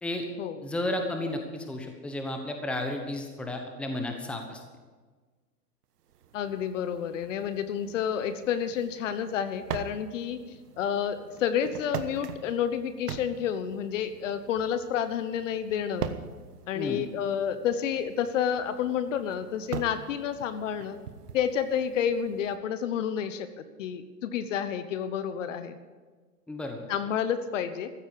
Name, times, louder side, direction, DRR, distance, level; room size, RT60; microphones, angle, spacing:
voice 1, 0.6-4.6 16.7-17.0 26.5-26.9, left 1 dB, ahead, 4 dB, 1.1 m, -33 dB
Macbook Closing, 6.0-22.6, right 8 dB, 75° right, 1.3 m, -43 dB
voice 2, 6.3-10.4 10.8-16.1 16.7-21.0 21.3-23.5 23.8-25.8 26.9-27.9, left 8 dB, 50° left, 11 dB, 1.1 m, -30 dB
14.5 x 8.5 x 8.5 m, 1.4 s
hypercardioid pair, 135°, 48 cm